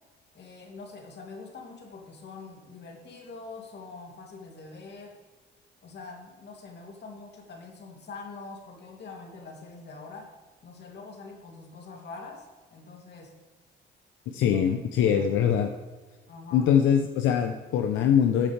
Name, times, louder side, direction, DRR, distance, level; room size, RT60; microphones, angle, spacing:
voice 1, 0.3-5.2 5.8-10.3 10.6-13.4 14.3-14.6 15.0-15.3 16.3-16.7, left 3 dB, 60° left, 1 dB, 2.8 m, -44 dB
voice 2, 14.3-15.7 16.5-18.5, left 8 dB, 90° left, 5 dB, 0.7 m, -23 dB
13.5 x 8.5 x 3.4 m, 1.3 s
cardioid pair, 90°, 20 cm